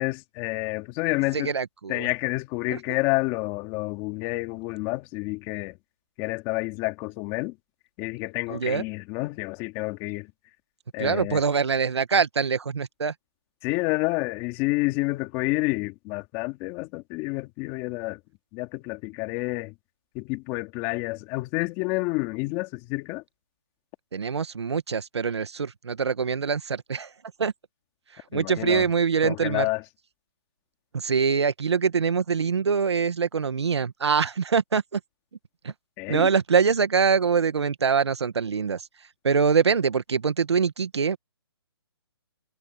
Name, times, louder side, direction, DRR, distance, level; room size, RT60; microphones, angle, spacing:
voice 1, 0.0-1.5 1.9-5.8 6.2-7.6 8.0-10.3 10.9-11.4 13.6-18.2 18.5-19.7 20.1-23.2 28.3-28.9 29.2-29.8 36.0-36.3, left 23 dB, 20° left, 2.5 m, -29 dB
voice 2, 1.3-2.1 2.7-2.8 8.5-8.8 11.0-13.1 24.1-27.1 27.4-27.5 28.3-29.7 30.9-35.0 35.6-35.7 36.1-38.8 39.2-41.2, right 6 dB, 80° right, 1.8 m, -24 dB
hypercardioid pair, 160°, 14 cm